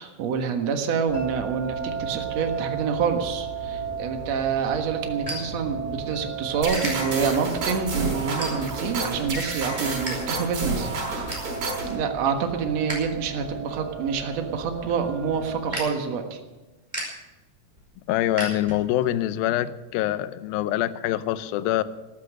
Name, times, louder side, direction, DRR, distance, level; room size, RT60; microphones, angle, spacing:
voice 1, 0.0-11.3 11.9-16.4, right 6 dB, 55° right, 5 dB, 2.1 m, -27 dB
sound 1, 1.1-15.8, right 6 dB, 25° left, 4.7 m, -35 dB
sound 2, 4.2-6.2 6.7-6.9 7.5-7.7 8.4-8.9 9.3-10.1 10.4-10.5 10.9-11.5 12.0-13.1 13.4-19.1, right 1 dB, 10° right, 5.1 m, -37 dB
sound 3, 6.6-11.9, right 3 dB, 70° right, 6.9 m, -30 dB
voice 2, 18.1-21.8, left 13 dB, 80° left, 14 dB, 2.3 m, -25 dB
13.5 x 13.0 x 6.5 m, 1.1 s
omnidirectional pair, 4.5 m